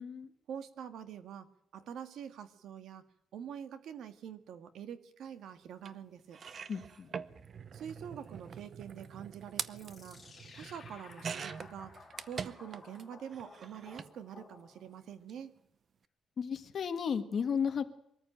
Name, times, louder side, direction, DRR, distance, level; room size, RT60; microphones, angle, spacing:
voice 1, 0.5-3.1 3.3-6.4 7.7-10.2 10.5-11.9 12.2-15.6, right 8 dB, 70° right, 10 dB, 1.7 m, -46 dB
sound 1, 5.8-5.9 6.3-13.0 13.3-14.1 15.1-15.3 15.6-15.7, right 6 dB, 40° right, 0.7 m, -44 dB
voice 2, 6.7-7.1 16.4-17.9, left 6 dB, 40° left, 9 dB, 1.6 m, -34 dB
sound 2, 9.8-15.1, left 4 dB, 15° left, 4.3 m, -55 dB
23.0 x 14.0 x 9.0 m, 0.74 s
cardioid pair, 165°, 0 cm